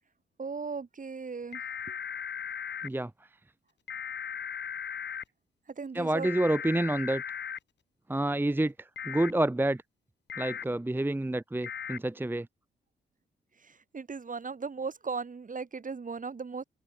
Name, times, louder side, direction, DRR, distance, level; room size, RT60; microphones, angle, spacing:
voice 1, 0.4-1.6 5.8-6.3 13.6-16.6, right 5 dB, 40° right, 3.0 m, -37 dB
sound 1, 1.5-2.9 3.9-5.2 6.2-7.6 9.0-9.3 10.3-10.6 11.6-12.0, left 8 dB, 60° left, 2.6 m, -37 dB
voice 2, 5.9-7.2 8.1-9.8 10.4-12.5, right 1 dB, 10° right, 1.0 m, -28 dB
open air
hypercardioid pair, 45°, 20 cm